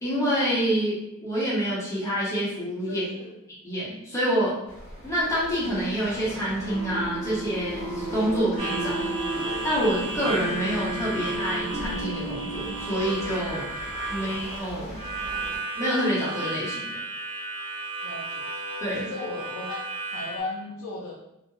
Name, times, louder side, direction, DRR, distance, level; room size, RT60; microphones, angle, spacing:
voice 1, 0.0-3.1 3.6-4.5 5.0-9.0 9.6-13.6 14.1-15.0 15.8-17.0 18.8-19.0, equal, 15° left, -8 dB, 0.9 m, -27 dB
voice 2, 2.9-3.4 8.9-9.4 14.1-14.3 18.0-18.5 19.0-21.1, left 2 dB, 80° left, -3 dB, 0.4 m, -37 dB
sound 1, 4.7-15.6, equal, 40° left, 1.2 m, -42 dB
sound 2, 6.7-13.3, right 1 dB, 75° right, 0.5 m, -33 dB
Harmonica, 8.6-20.4, right 2 dB, 25° right, 0.7 m, -34 dB
2.3 x 2.1 x 3.0 m, 0.84 s
head